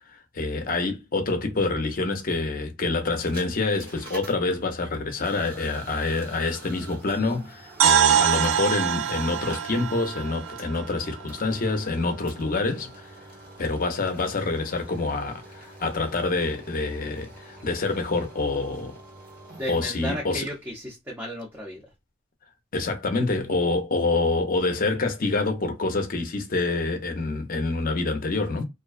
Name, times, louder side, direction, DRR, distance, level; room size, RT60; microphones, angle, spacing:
voice 1, 0.3-13.1 13.6-18.9 19.7-20.5 22.7-28.6, left 3 dB, 45° left, 0.6 m, -26 dB
sound 1, 3.0-19.9, right 1 dB, 50° right, 1.0 m, -46 dB
sound 2, 7.8-11.7, right 8 dB, 80° right, 0.3 m, -24 dB
voice 2, 19.6-21.9, equal, 10° right, 0.6 m, -34 dB
2.4 x 2.2 x 2.3 m
head